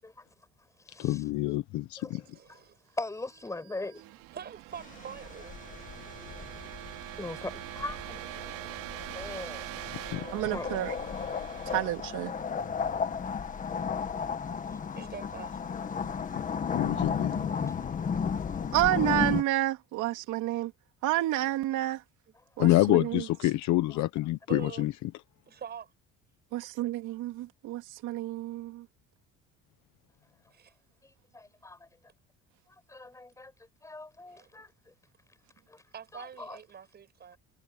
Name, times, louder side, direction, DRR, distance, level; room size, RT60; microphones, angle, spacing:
voice 1, 0.0-1.2 2.0-4.0 6.2-6.6 7.2-8.2 9.1-9.8 10.5-10.7 14.7-15.0 17.5-17.8 21.2-21.3 22.3-22.6 23.9-24.0 31.0-31.9 32.7-34.9 35.3-35.4 35.7-35.9 36.1-36.6, left 2 dB, 10° left, 7.8 m, -42 dB
voice 2, 1.0-2.2 10.1-10.2 16.7-17.7 22.6-25.1, left 17 dB, 65° left, 0.9 m, -27 dB
voice 3, 2.3-2.8 4.3-5.6 14.9-15.6 20.2-20.3 24.5-24.9 25.5-25.9 30.5-30.7 34.3-34.5 35.9-37.4, right 8 dB, 30° right, 7.0 m, -44 dB
sound 1, 3.3-13.0, right 17 dB, 90° right, 3.1 m, -44 dB
sound 2, 4.8-19.4, left 6 dB, 25° left, 1.6 m, -34 dB
voice 4, 10.3-10.9 11.7-12.3 18.7-20.7 21.0-22.0 22.6-23.2 26.5-28.8, right 15 dB, 70° right, 3.1 m, -30 dB
cardioid pair, 170°, 32 cm